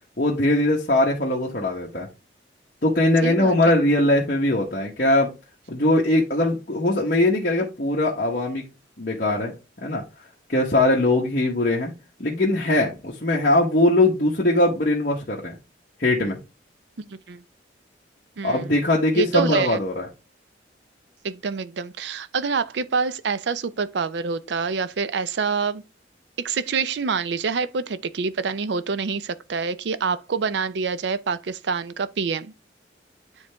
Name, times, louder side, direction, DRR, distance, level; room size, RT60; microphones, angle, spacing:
voice 1, 0.2-2.1 2.8-5.3 5.7-8.6 9.0-9.5 9.8-10.0 10.5-11.9 12.2-15.6 16.0-16.4 18.4-20.1, left 1 dB, 50° left, 1.1 m, -21 dB
voice 2, 3.2-3.5 17.0-17.4 18.4-18.7 19.2-19.8 21.2-25.8 26.4-32.5, right 5 dB, 70° right, 0.5 m, -26 dB
9.7 x 3.2 x 3.4 m
head